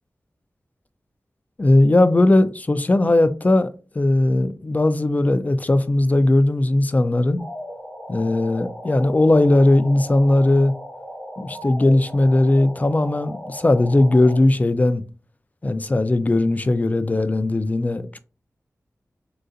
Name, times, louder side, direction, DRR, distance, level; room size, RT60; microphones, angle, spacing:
voice 1, 1.6-3.7 3.9-7.4 8.1-10.7 11.4-15.0 15.6-18.2, left 2 dB, 30° left, 0.3 m, -18 dB
sound 1, 7.4-14.4, equal, ahead, 0.8 m, -37 dB
3.8 x 2.4 x 2.6 m
wide cardioid pair, 85°, 6 cm